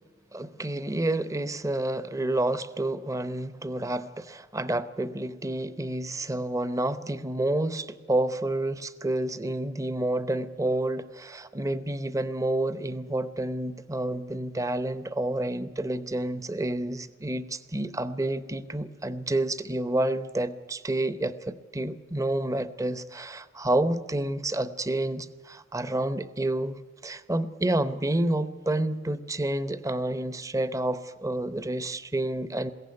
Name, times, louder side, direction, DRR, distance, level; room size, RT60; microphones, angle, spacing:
voice 1, 0.3-32.7, right 1 dB, 15° right, 13 dB, 0.8 m, -29 dB
21.5 x 16.5 x 9.6 m, 1.4 s
head